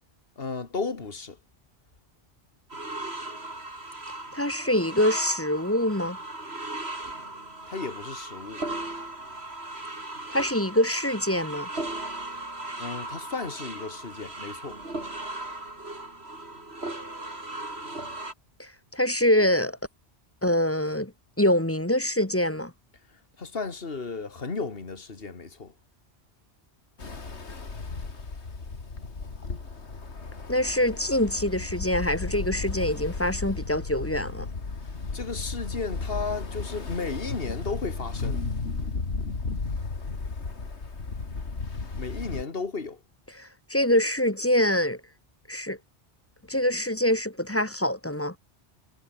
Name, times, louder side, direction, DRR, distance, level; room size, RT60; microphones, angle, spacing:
voice 1, 0.4-1.4 7.7-8.6 12.8-14.8 23.4-25.7 35.1-38.4 42.0-43.0, left 4 dB, 60° left, 2.4 m, -34 dB
sound 1, 2.7-18.3, right 2 dB, 70° right, 5.1 m, -37 dB
voice 2, 4.3-6.2 10.3-11.7 18.6-19.8 20.4-21.1 21.4-22.7 30.5-34.5 43.4-45.0 45.5-45.8 46.5-48.3, left 1 dB, 10° left, 1.5 m, -25 dB
Ocean, 27.0-42.4, left 4 dB, 90° left, 2.7 m, -34 dB
omnidirectional pair, 1.1 m